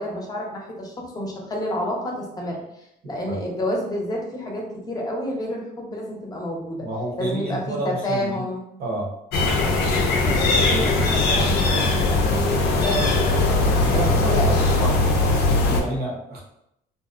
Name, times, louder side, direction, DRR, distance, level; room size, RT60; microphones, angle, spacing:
voice 1, 0.0-6.9 7.2-8.6 10.2-14.0 14.3-14.6, equal, 20° left, -1 dB, 0.7 m, -29 dB
voice 2, 6.8-8.4 8.8-9.1 13.9-14.5 14.8-15.0 15.3-16.4, right 1 dB, 65° right, -2 dB, 0.8 m, -29 dB
sound 1, 9.3-15.8, left 2 dB, 80° left, 0.5 m, -20 dB
2.5 x 2.0 x 2.4 m, 0.79 s
cardioid pair, 110°, 17 cm